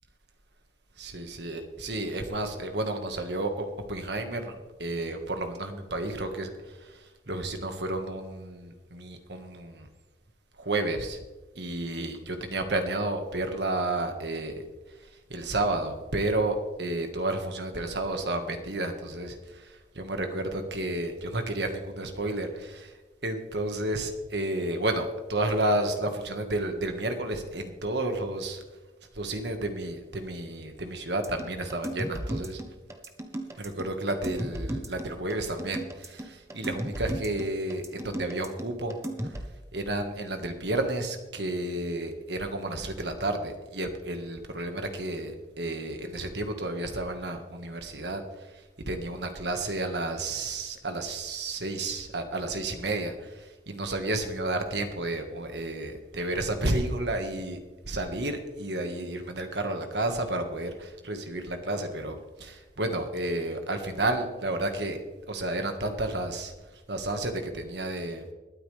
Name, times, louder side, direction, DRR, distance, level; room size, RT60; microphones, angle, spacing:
voice 1, 1.0-9.9 10.6-11.2 11.5-14.6 15.0-22.9 23.2-28.6 29.1-32.6 33.6-39.0 39.2-39.3 39.7-57.6 57.9-65.0 65.3-68.2, right 2 dB, 75° right, 5 dB, 1.7 m, -31 dB
sound 1, 31.2-39.4, right 1 dB, 15° right, 1.0 m, -35 dB
21.0 x 9.2 x 3.4 m, 1.2 s
head